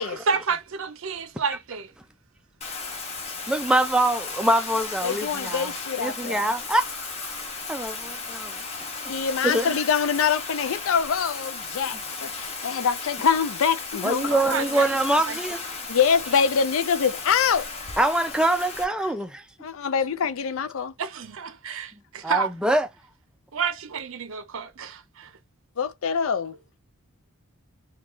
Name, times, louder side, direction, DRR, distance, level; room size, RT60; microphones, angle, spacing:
voice 1, 0.0-1.9 14.3-15.4 21.0-22.5 23.5-25.3, right 5 dB, 60° right, 0.6 m, -30 dB
Bathtub (filling or washing), 2.6-18.8, left 4 dB, 30° left, 0.7 m, -35 dB
voice 2, 3.5-5.7 6.0-7.4 7.7-8.5 9.4-9.7 14.0-15.8 18.0-19.4 22.2-22.9, right 1 dB, 5° right, 0.3 m, -24 dB
voice 3, 5.0-6.4 9.1-14.3 14.6-14.7 15.9-17.7 19.6-20.9 25.8-26.5, left 6 dB, 65° left, 0.4 m, -24 dB
3.0 x 2.3 x 3.7 m
head